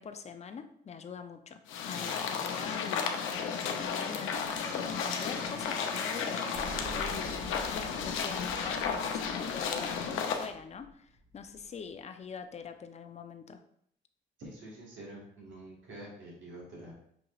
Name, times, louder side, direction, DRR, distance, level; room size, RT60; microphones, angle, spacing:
voice 1, 0.0-3.1 3.7-7.4 7.7-13.6, left 6 dB, 35° left, 8 dB, 0.4 m, -44 dB
sound 1, 1.7-10.5, left 6 dB, 85° left, 0.6 m, -33 dB
Wind instrument woodwind instrument, 3.8-7.7, equal, 15° right, 1.5 m, -47 dB
Explosion, 6.5-11.9, right 2 dB, 40° right, 1.5 m, -47 dB
voice 2, 14.4-16.9, right 1 dB, 75° right, -4 dB, 1.5 m, -47 dB
6.1 x 2.9 x 2.4 m, 0.69 s
cardioid pair, 90°, 20 cm